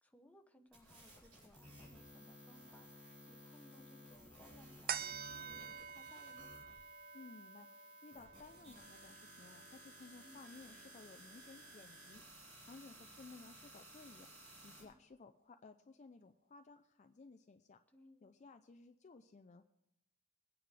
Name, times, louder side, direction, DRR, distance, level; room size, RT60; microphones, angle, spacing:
voice 1, 0.0-6.5 10.2-10.4 14.8-14.9 17.9-18.3, left 1 dB, 5° left, 5 dB, 0.8 m, -64 dB
sound 1, 0.7-14.8, equal, 85° right, 5.9 m, -57 dB
sound 2, 4.9-11.6 12.1-12.2, right 8 dB, 45° right, 0.5 m, -49 dB
voice 2, 7.1-14.3 14.6-17.8 18.2-19.6, left 3 dB, 35° left, 7 dB, 0.4 m, -58 dB
22.0 x 8.9 x 3.3 m, 0.83 s
head